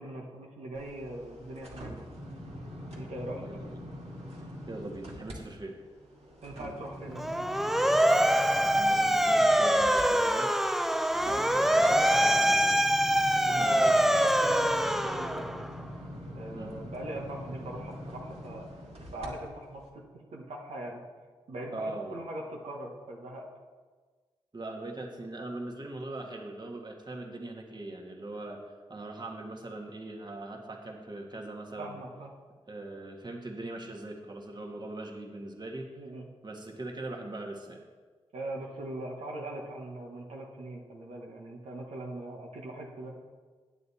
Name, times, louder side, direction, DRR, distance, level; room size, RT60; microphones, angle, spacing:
voice 1, 0.0-2.1 2.9-3.4 6.4-7.3 11.2-12.2 13.4-15.4 16.3-18.7 19.1-20.0 20.3-21.0 21.5-23.5 31.8-32.3 36.0-36.2 38.3-43.1, right 1 dB, 85° right, -2 dB, 1.3 m, -40 dB
sound 1, 0.7-5.4 5.8-19.3 19.8-19.9, equal, 65° right, 2.1 m, -44 dB
voice 2, 4.7-5.8 8.5-10.5 11.5-11.9 12.2-12.8 13.3-14.4 16.5-16.7 21.7-22.1 24.5-28.6 28.9-32.0 32.7-35.9 36.4-37.8, right 2 dB, 40° right, 1 dB, 1.6 m, -41 dB
Motor vehicle (road) / Siren, 7.2-15.8, equal, 5° right, 0.5 m, -24 dB
9.1 x 8.3 x 4.2 m, 1.4 s
cardioid pair, 45°, 11 cm